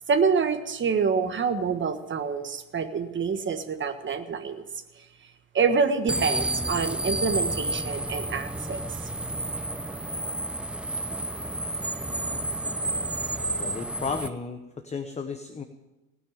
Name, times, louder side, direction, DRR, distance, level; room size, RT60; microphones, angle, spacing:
voice 1, 0.1-4.6 5.0-5.1 5.5-8.8, right 5 dB, 25° right, 9 dB, 1.4 m, -26 dB
sound 1, 6.1-14.3, right 1 dB, 5° right, 0.4 m, -30 dB
voice 2, 13.6-15.6, left 5 dB, 15° left, 8 dB, 0.9 m, -34 dB
19.0 x 6.4 x 8.7 m, 1.1 s
supercardioid pair, 95°, 41 cm